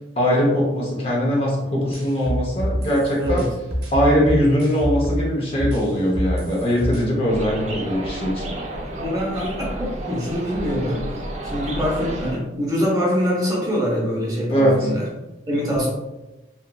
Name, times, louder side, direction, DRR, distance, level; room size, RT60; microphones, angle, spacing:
voice 1, 0.2-3.5 3.9-8.5 14.5-14.9, equal, 30° left, -4 dB, 0.5 m, -21 dB
sound 1, 1.9-5.3 5.6-7.0, equal, 55° right, 0.7 m, -26 dB
sound 2, 7.3-12.3, right 1 dB, 35° right, 0.3 m, -31 dB
voice 2, 8.9-11.1 11.4-15.0 15.5-15.9, equal, 20° right, -4 dB, 0.7 m, -24 dB
2.9 x 2.4 x 2.2 m, 1.0 s
head